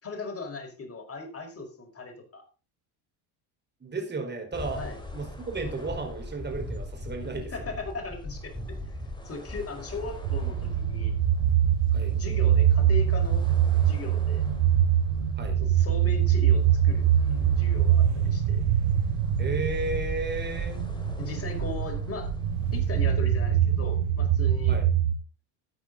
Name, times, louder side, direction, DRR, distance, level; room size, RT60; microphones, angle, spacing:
voice 1, 0.0-2.4 4.7-5.0 7.5-8.5 9.2-11.1 12.1-13.4 13.8-14.4 15.6-18.6 21.2-22.3 22.7-24.7, left 3 dB, 30° left, 3 dB, 5.1 m, -38 dB
voice 2, 3.8-4.8 5.1-7.8 11.9-12.1 15.4-15.6 19.4-20.8 24.7-24.9, right 3 dB, 20° right, 3 dB, 4.7 m, -33 dB
sound 1, 4.5-22.8, left 1 dB, 10° left, 4.2 m, -40 dB
sound 2, 10.2-25.1, right 9 dB, 70° right, 2.0 m, -24 dB
13.5 x 9.0 x 4.1 m, 0.34 s
supercardioid pair, 95°, 49 cm